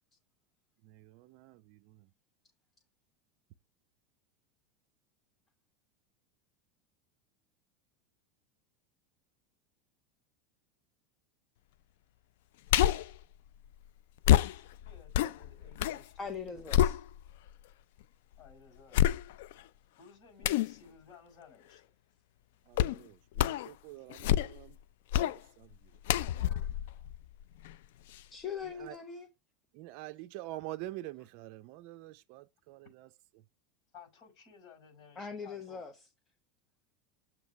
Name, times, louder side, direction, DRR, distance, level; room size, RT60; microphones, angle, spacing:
voice 1, 0.9-1.8 22.7-24.8 25.3-25.7 28.8-29.0 29.7-32.8, right 16 dB, 55° right, 0.4 m, -46 dB
sound 1, 12.7-13.2 14.2-16.0 16.4-17.5 18.0-18.1 18.9-19.6 20.4-20.7 22.8-23.0 23.3-23.7 24.1-24.7 25.1-25.4 26.1-27.7 28.1-28.2, left 12 dB, 75° left, 0.4 m, -28 dB
voice 2, 14.4-16.6 18.4-19.1 20.0-21.9 26.5-26.7 33.9-35.8, left 5 dB, 45° left, 5.2 m, -57 dB
voice 3, 16.2-17.0 26.4-26.6 28.3-29.3 35.2-35.9, left 6 dB, 20° left, 0.9 m, -41 dB
7.2 x 3.1 x 5.8 m
supercardioid pair, 140°, 0 cm